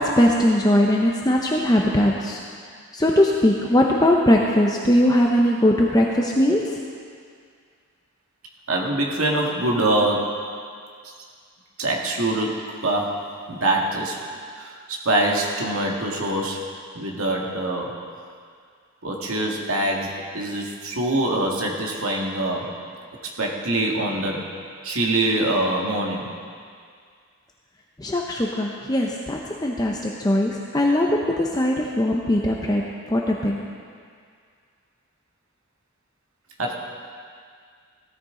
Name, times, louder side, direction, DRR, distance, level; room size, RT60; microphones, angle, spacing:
voice 1, 0.0-2.4 2.9-6.8 28.0-33.7, left 1 dB, 15° left, -1 dB, 0.7 m, -20 dB
voice 2, 8.7-10.4 11.8-14.2 14.6-18.0 19.0-22.8 23.4-24.5 24.8-26.3 36.6-36.7, right 1 dB, 80° right, -1 dB, 2.0 m, -24 dB
16.5 x 13.5 x 3.8 m, 2.1 s
head